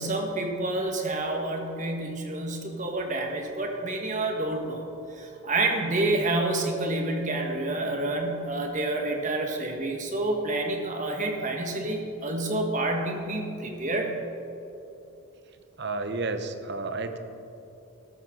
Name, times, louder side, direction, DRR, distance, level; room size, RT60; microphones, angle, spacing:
voice 1, 0.0-4.8 5.2-14.1, right 2 dB, 35° right, 2 dB, 1.5 m, -28 dB
voice 2, 15.5-17.2, right 3 dB, 50° right, 8 dB, 0.8 m, -32 dB
14.0 x 12.5 x 3.8 m, 2.9 s
head